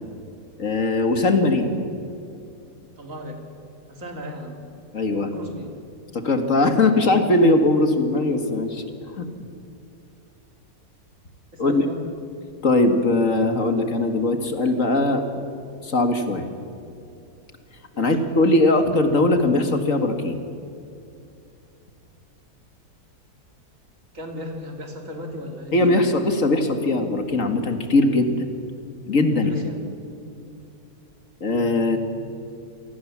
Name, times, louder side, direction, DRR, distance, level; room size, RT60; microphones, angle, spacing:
voice 1, 0.6-1.7 4.9-5.3 6.1-8.8 9.2-9.3 11.6-11.8 12.6-15.5 15.8-16.5 18.0-20.4 25.7-28.5 29.1-29.5 31.4-32.0, left 2 dB, 55° left, 7 dB, 2.1 m, -20 dB
voice 2, 3.0-3.4 3.9-4.6 5.1-5.8 11.5-12.0 17.9-18.2 24.1-26.1 29.3-29.8, equal, 55° right, 3 dB, 3.2 m, -36 dB
27.5 x 19.0 x 7.3 m, 2.6 s
omnidirectional pair, 1.7 m